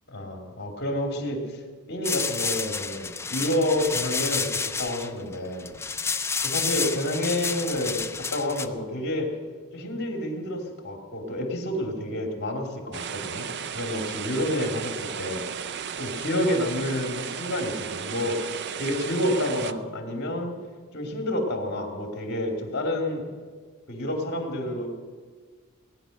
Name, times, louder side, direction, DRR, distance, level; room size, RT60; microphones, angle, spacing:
voice 1, 0.1-1.4 1.9-5.8 6.4-8.0 8.3-9.3 9.7-13.5 13.7-20.5 20.9-23.2 23.9-24.9, left 1 dB, 50° left, 3 dB, 2.8 m, -29 dB
sound 1, 2.0-8.7, left 5 dB, 10° left, 0.5 m, -30 dB
sound 2, 12.9-19.7, right 7 dB, 50° right, 0.5 m, -34 dB
19.0 x 10.0 x 6.6 m, 1.6 s
head